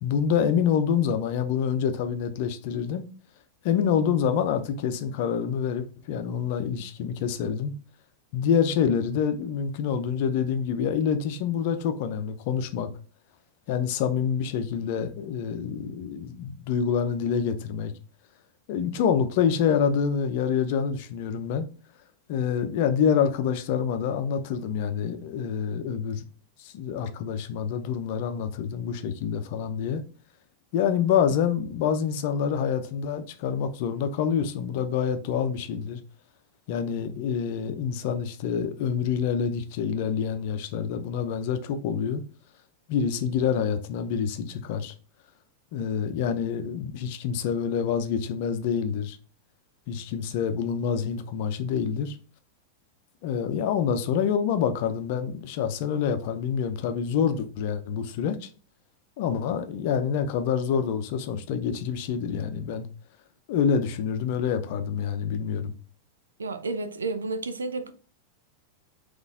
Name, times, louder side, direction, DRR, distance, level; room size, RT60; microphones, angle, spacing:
voice 1, 0.0-3.1 3.6-7.7 8.3-12.9 13.7-17.9 18.7-21.6 22.3-26.2 26.6-30.0 30.7-36.0 36.7-42.2 42.9-44.9 45.7-49.2 49.9-52.2 53.2-58.5 59.2-62.9 63.5-65.7, left 7 dB, 50° left, 0.6 m, -27 dB
voice 2, 66.4-67.9, right 3 dB, 75° right, 0.5 m, -31 dB
4.0 x 3.1 x 3.6 m
figure-of-eight pair, 90°, 0 cm